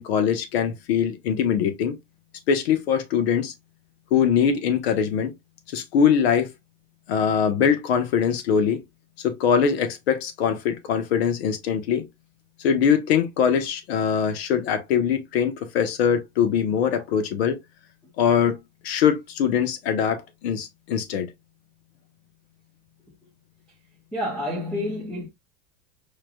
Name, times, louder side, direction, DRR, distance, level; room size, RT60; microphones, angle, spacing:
voice 1, 0.0-2.0 2.5-3.5 4.1-5.3 5.7-6.5 7.1-8.8 9.2-12.1 12.6-17.6 18.2-21.3, left 7 dB, 65° left, 1.0 m, -22 dB
voice 2, 24.1-25.3, left 1 dB, 5° left, 0.5 m, -28 dB
4.7 x 3.2 x 2.2 m
supercardioid pair, 175°, 35 cm